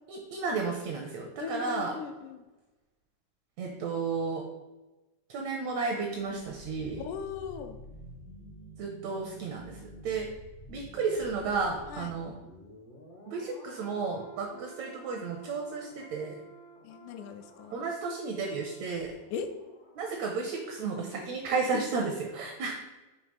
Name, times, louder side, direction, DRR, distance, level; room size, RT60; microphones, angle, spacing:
voice 1, 0.1-2.0 3.6-4.4 5.3-7.0 8.8-10.3 10.7-12.3 13.3-16.4 17.7-19.1 19.9-22.7, right 4 dB, 80° right, 2 dB, 1.6 m, -33 dB
voice 2, 1.4-2.4 7.0-7.8 11.9-12.2 14.5-14.7 16.8-17.8 19.3-19.5, left 7 dB, 80° left, 8 dB, 2.0 m, -39 dB
sound 1, 6.1-21.0 21.3-21.4, right 2 dB, 60° left, 0.7 m, -51 dB
6.8 x 3.1 x 5.1 m, 1.1 s
omnidirectional pair, 3.8 m